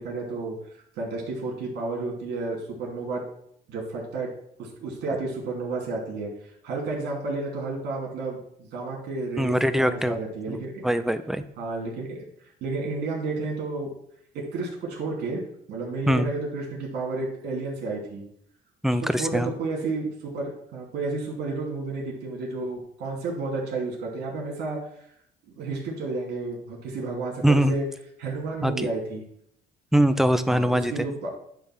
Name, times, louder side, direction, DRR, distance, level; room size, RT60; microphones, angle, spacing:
voice 1, 0.0-3.3 3.7-4.3 4.6-10.9 11.6-12.3 12.6-13.9 14.3-15.4 15.7-18.2 18.8-24.9 25.4-27.9 28.2-29.2 30.5-31.3, right 3 dB, 75° right, -1 dB, 2.9 m, -31 dB
voice 2, 9.4-10.2 10.5-11.4 16.1-16.3 18.8-19.5 27.4-27.8 28.6-28.9 29.9-30.9, equal, ahead, 11 dB, 0.6 m, -22 dB
10.0 x 3.5 x 6.1 m, 0.70 s
cardioid pair, 110°, 17 cm